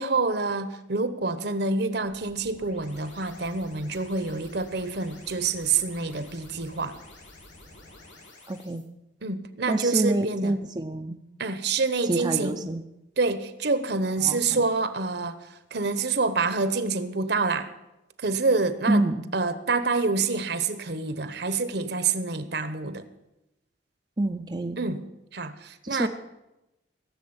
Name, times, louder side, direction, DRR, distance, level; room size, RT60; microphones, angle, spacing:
voice 1, 0.0-7.0 9.2-10.6 11.4-12.7 13.2-17.7 18.2-19.1 19.3-23.1 24.8-25.0 25.3-26.1, right 4 dB, 60° right, 12 dB, 1.0 m, -27 dB
sound 1, 2.0-8.8, left 2 dB, 80° left, 5.1 m, -50 dB
voice 2, 8.5-8.8 9.7-11.2 12.0-12.8 14.2-14.7 18.9-19.2 24.2-24.8 25.8-26.1, right 1 dB, 25° right, 4 dB, 0.6 m, -27 dB
17.0 x 7.3 x 8.8 m, 0.94 s
head